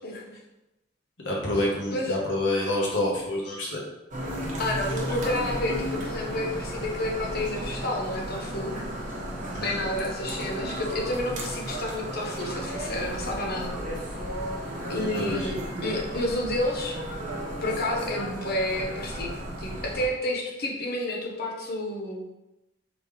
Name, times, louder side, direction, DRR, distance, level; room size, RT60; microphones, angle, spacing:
voice 1, 0.0-0.4 1.9-2.2 4.6-8.7 9.6-13.8 14.9-17.0 17.6-19.3 19.6-22.2, left 1 dB, 55° left, 0 dB, 0.9 m, -30 dB
voice 2, 1.2-3.8 9.5-9.8 15.0-15.5, left 1 dB, 75° left, -3 dB, 1.2 m, -28 dB
sound 1, 4.1-20.1, right 1 dB, 45° right, 0.9 m, -34 dB
4.1 x 3.4 x 3.2 m, 0.97 s
head